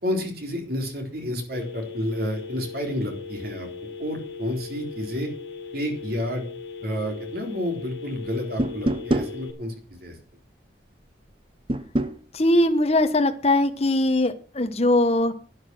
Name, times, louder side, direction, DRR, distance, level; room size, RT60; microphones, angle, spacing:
voice 1, 0.0-3.7 4.0-5.3 5.7-6.4 6.8-9.7 10.0-10.1, left 1 dB, 55° right, 3 dB, 3.9 m, -30 dB
Telephone, 1.5-9.5, left 5 dB, 70° left, 3.7 m, -38 dB
sound 1, 8.6-9.3 11.7-12.2, right 1 dB, 30° right, 0.8 m, -24 dB
voice 2, 12.3-15.3, left 1 dB, 35° left, 7 dB, 1.1 m, -21 dB
11.5 x 9.7 x 6.1 m, 0.40 s
head